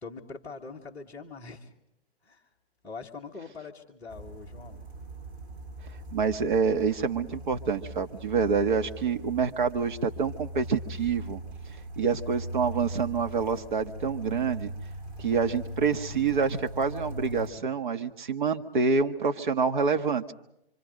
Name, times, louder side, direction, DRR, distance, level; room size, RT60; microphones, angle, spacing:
voice 1, 0.0-1.7 2.2-2.4 2.8-4.8, left 4 dB, 10° left, -6 dB, 1.5 m, -43 dB
sound 1, 4.1-17.5, equal, 30° right, 6.1 m, -40 dB
voice 2, 6.1-11.4 12.0-14.7 15.2-20.2, right 5 dB, 50° right, 7 dB, 1.6 m, -27 dB
27.5 x 25.5 x 5.3 m, 0.81 s
hypercardioid pair, 150°, 32 cm